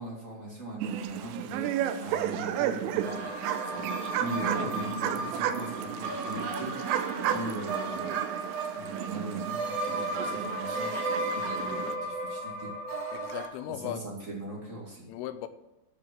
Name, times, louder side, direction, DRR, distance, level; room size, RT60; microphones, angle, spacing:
voice 1, 0.0-8.1 8.7-12.7 13.6-15.1, right 1 dB, 35° right, 1.2 m, -40 dB
sound 1, 0.8-12.0, right 10 dB, 85° right, 3.2 m, -33 dB
sound 2, 3.0-13.5, right 2 dB, 60° right, 2.7 m, -35 dB
voice 2, 13.1-14.0 15.1-15.5, left 12 dB, 80° left, 3.2 m, -38 dB
12.0 x 6.6 x 7.6 m
omnidirectional pair, 5.9 m